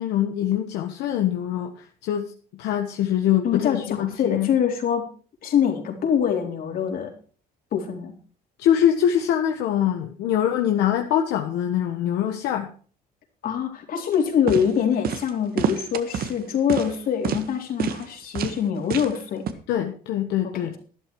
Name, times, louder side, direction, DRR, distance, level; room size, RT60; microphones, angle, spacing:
voice 1, 0.0-4.5 8.6-12.7 19.7-20.7, left 10 dB, 85° left, 4 dB, 1.4 m, -23 dB
voice 2, 3.4-5.1 5.4-7.1 7.7-8.1 13.4-19.5 20.4-20.5, left 8 dB, 60° left, 2 dB, 4.0 m, -24 dB
sound 1, 14.1-14.2 14.5-14.7 15.0-15.3 15.6-16.3 16.7-17.0 17.2-17.4 17.8-18.0 18.3-18.6 18.9-19.2 19.5-19.6, right 8 dB, 65° right, 1.6 m, -26 dB
12.5 x 11.5 x 4.7 m, 0.40 s
cardioid pair, 110°, 17 cm